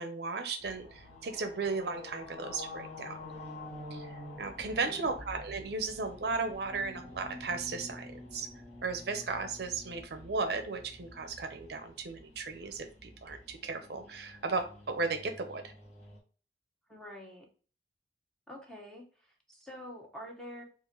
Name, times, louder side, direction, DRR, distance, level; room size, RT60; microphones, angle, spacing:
voice 1, 0.0-3.2 3.9-8.5 8.8-15.6, right 4 dB, 60° right, 6 dB, 0.5 m, -35 dB
sound 1, 0.6-16.2, left 1 dB, 35° left, 1.3 m, -48 dB
voice 2, 4.7-5.1 16.9-17.4 18.5-20.6, equal, 5° left, -1 dB, 0.7 m, -47 dB
3.8 x 2.4 x 3.0 m, 0.40 s
head